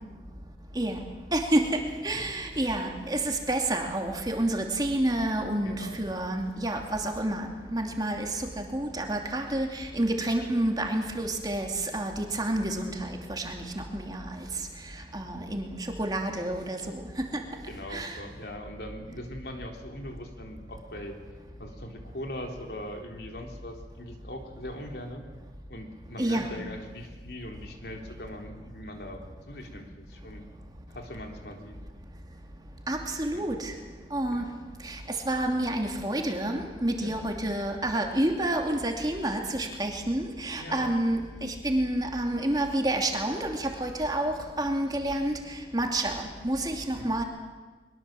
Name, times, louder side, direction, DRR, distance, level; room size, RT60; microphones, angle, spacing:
voice 1, 1.3-14.5 15.1-17.4 17.9-18.2 26.2-26.6 32.9-33.7 34.1-34.5 34.8-45.3 45.7-47.2, right 1 dB, 20° right, 2 dB, 2.5 m, -29 dB
voice 2, 5.6-6.0 17.7-21.2 21.6-25.2 25.7-30.4 30.9-31.8 33.3-33.4 34.3-34.5 37.0-37.1 40.6-40.9 46.9-47.1, left 1 dB, 65° left, 2 dB, 3.5 m, -41 dB
23.0 x 22.5 x 7.6 m, 1.4 s
head